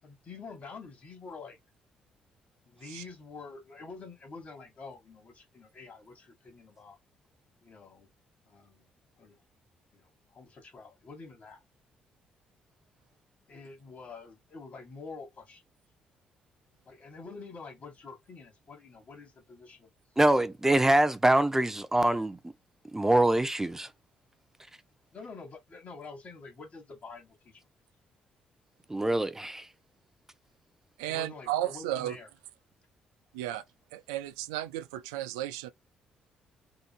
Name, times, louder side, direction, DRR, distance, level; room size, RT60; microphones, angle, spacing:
voice 1, 0.0-1.6 2.7-7.0 7.6-8.1 8.5-8.9 9.2-9.4 9.9-11.6 13.5-15.6 16.9-19.9 25.1-27.7 31.1-32.3, left 4 dB, 50° left, 1.9 m, -47 dB
voice 2, 20.2-22.4 22.9-23.9 28.9-29.7, right 1 dB, 15° right, 0.5 m, -24 dB
voice 3, 31.0-32.2 33.3-33.6 33.9-35.7, right 13 dB, 85° right, 0.3 m, -34 dB
3.8 x 2.6 x 2.3 m
hypercardioid pair, 50°, 3 cm